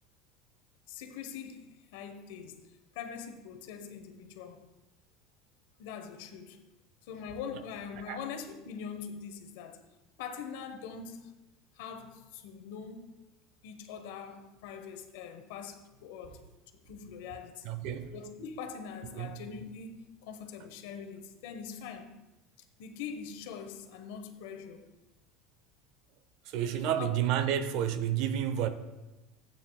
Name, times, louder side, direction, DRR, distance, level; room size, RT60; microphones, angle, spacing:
voice 1, 0.9-2.6 2.9-4.7 5.8-6.6 7.0-9.8 10.2-11.4 11.7-13.2 13.6-16.4 16.7-17.7 18.1-22.1 22.8-24.9 26.8-27.1, left 6 dB, 80° left, 1.0 m, -43 dB
voice 2, 17.6-18.1 19.2-19.3 26.4-28.7, right 10 dB, 60° right, 0.7 m, -30 dB
14.0 x 8.8 x 2.3 m
supercardioid pair, 145°, 0 cm